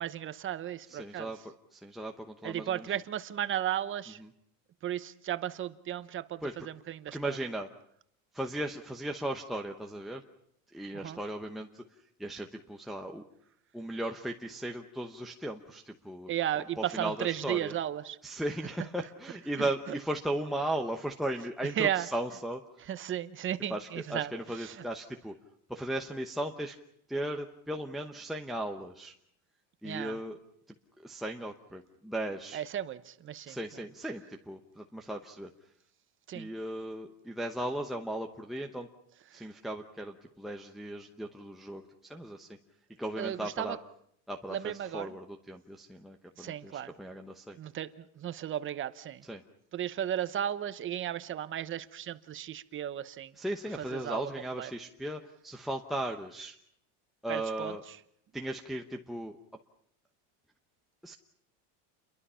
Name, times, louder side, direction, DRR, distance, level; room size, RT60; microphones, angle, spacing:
voice 1, 0.0-1.3 2.4-4.2 4.8-7.4 10.9-11.2 16.3-18.2 19.6-20.0 21.8-22.1 22.8-24.8 29.8-30.2 32.5-33.8 36.3-36.5 39.3-39.5 43.2-43.8 44.5-45.1 46.4-46.9 47.5-49.2 49.7-53.3 53.8-54.7 57.3-58.0, right 11 dB, 25° right, 13 dB, 0.9 m, -35 dB
voice 2, 0.9-1.4 1.7-2.9 6.4-6.5 7.1-7.7 8.3-10.2 10.7-13.2 13.7-17.7 18.2-22.9 23.7-25.4 25.7-26.8 27.1-29.1 29.8-30.4 31.0-32.6 33.5-35.5 36.3-38.9 39.3-42.5 43.0-43.8 44.3-47.6 49.2-49.4 53.4-56.6 57.2-57.8 58.3-59.4 61.0-61.1, right 1 dB, ahead, 1 dB, 0.9 m, -37 dB
29.0 x 23.0 x 5.7 m, 0.71 s
supercardioid pair, 145°, 45 cm